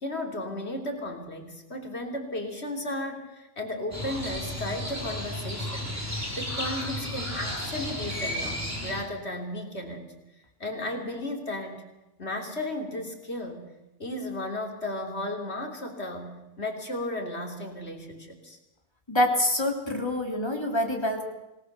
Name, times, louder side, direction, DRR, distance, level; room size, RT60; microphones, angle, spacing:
voice 1, 0.0-6.0 6.4-10.1 10.6-11.9 12.2-13.6 14.0-18.6, left 1 dB, 70° left, 3 dB, 3.6 m, -34 dB
Crow, 3.9-9.0, equal, 15° right, 4.5 m, -33 dB
voice 2, 19.1-21.2, left 1 dB, 25° left, 2 dB, 3.3 m, -26 dB
26.0 x 19.0 x 6.8 m, 0.97 s
omnidirectional pair, 1.1 m